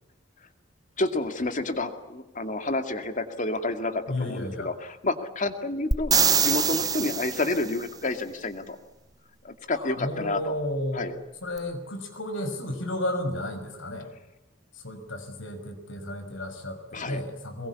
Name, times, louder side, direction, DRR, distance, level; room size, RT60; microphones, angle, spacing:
voice 1, 1.0-8.8 9.4-10.5 10.9-11.1 16.9-17.2, left 2 dB, 40° left, 7 dB, 2.5 m, -29 dB
voice 2, 4.1-4.7 9.7-11.1 11.4-14.1 14.7-17.7, left 1 dB, 85° left, 6 dB, 5.9 m, -33 dB
sound 1, 5.9-7.8 11.6-11.7, right 6 dB, 20° right, 0.9 m, -23 dB
23.0 x 22.0 x 8.4 m, 0.99 s
head